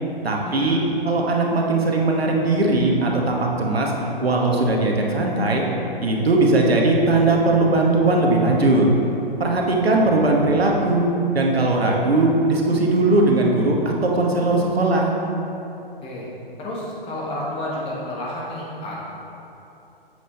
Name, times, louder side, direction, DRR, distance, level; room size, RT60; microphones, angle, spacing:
voice 1, 0.2-0.8 1.0-3.9 4.2-5.6 6.0-8.9 9.4-11.1 11.3-15.1, right 2 dB, 90° right, 0 dB, 1.1 m, -19 dB
voice 2, 16.6-19.0, left 1 dB, 20° left, -5 dB, 1.3 m, -30 dB
7.7 x 5.7 x 3.2 m, 2.9 s
hypercardioid pair, 130°, 30 cm